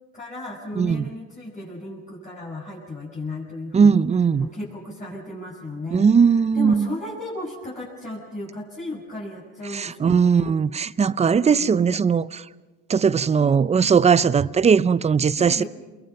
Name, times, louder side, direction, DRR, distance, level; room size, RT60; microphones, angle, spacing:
voice 1, 0.1-4.0 4.4-6.0 6.5-10.6 11.1-12.3 15.4-15.7, left 1 dB, 25° left, 6.4 m, -35 dB
voice 2, 3.7-4.5 5.9-6.9 9.7-12.4 12.9-15.6, right 6 dB, 20° right, 0.6 m, -19 dB
28.0 x 22.0 x 5.8 m
cardioid pair, 105°, 31 cm